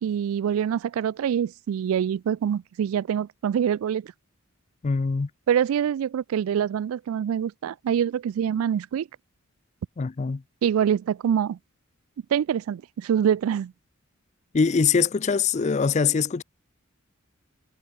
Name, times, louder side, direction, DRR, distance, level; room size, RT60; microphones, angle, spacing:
voice 1, 0.0-4.1 5.5-9.1 10.6-11.6 12.3-13.7, right 8 dB, 80° right, 0.3 m, -25 dB
voice 2, 4.8-5.3 10.0-10.4 14.5-16.4, left 5 dB, 35° left, 0.4 m, -23 dB
head